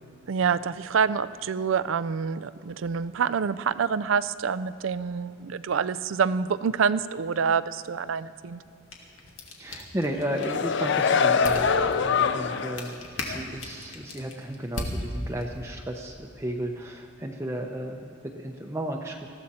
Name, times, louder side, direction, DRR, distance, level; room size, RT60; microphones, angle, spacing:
voice 1, 0.3-8.6, right 6 dB, 70° right, 16 dB, 0.4 m, -27 dB
sound 1, 8.6-15.7, left 1 dB, 85° left, 2.1 m, -39 dB
voice 2, 9.6-19.3, right 1 dB, 15° right, 1 dB, 0.7 m, -34 dB
sound 2, 10.1-12.9 13.3-13.4, left 6 dB, 60° left, 0.5 m, -24 dB
20.0 x 14.5 x 4.3 m, 2.9 s
head